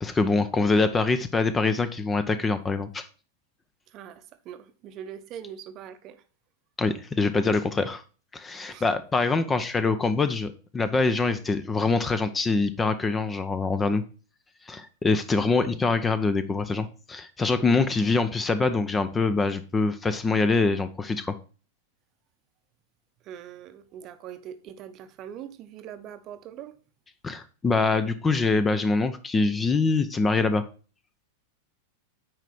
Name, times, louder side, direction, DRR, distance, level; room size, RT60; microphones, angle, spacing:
voice 1, 0.0-3.1 6.8-8.0 8.3-14.0 14.7-21.3 27.2-30.6, left 3 dB, 15° left, 0.7 m, -24 dB
voice 2, 3.9-6.2 8.7-8.9 23.2-26.8, right 9 dB, 35° right, 0.8 m, -42 dB
9.1 x 5.0 x 4.3 m
figure-of-eight pair, 90°, 0 cm